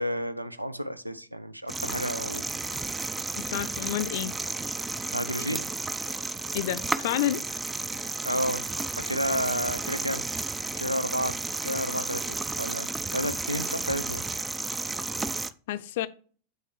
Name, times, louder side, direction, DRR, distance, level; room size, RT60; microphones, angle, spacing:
voice 1, 0.0-2.4 5.1-5.7 8.2-8.7 9.0-10.2 10.8-14.2, equal, 85° right, 0.5 m, -31 dB
sound 1, 1.7-15.5, right 3 dB, 10° right, 0.3 m, -32 dB
voice 2, 3.4-4.3 6.5-7.4 15.7-16.1, left 13 dB, 55° left, 0.5 m, -29 dB
7.6 x 3.2 x 6.2 m
figure-of-eight pair, 90°, 0 cm